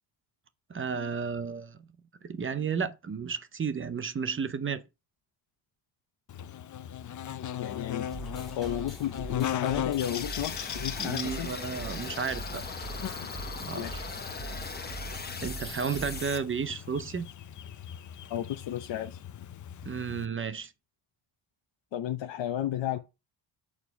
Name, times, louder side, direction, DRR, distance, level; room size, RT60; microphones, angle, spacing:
voice 1, 0.7-1.8 2.3-4.8 11.0-12.6 13.6-14.0 15.4-17.3 19.8-20.7, right 6 dB, 25° right, 0.6 m, -33 dB
Buzz, 6.3-20.3, left 10 dB, 40° left, 0.5 m, -39 dB
voice 2, 7.5-8.1 8.5-11.5 13.2-13.3 13.8-14.1 18.3-19.5 21.9-23.0, left 12 dB, 65° left, 0.8 m, -33 dB
sound 1, 8.1-16.4, right 3 dB, ahead, 2.3 m, -43 dB
sound 2, 10.0-16.4, left 4 dB, 20° left, 0.9 m, -40 dB
6.8 x 4.4 x 5.7 m
wide cardioid pair, 145°, 47 cm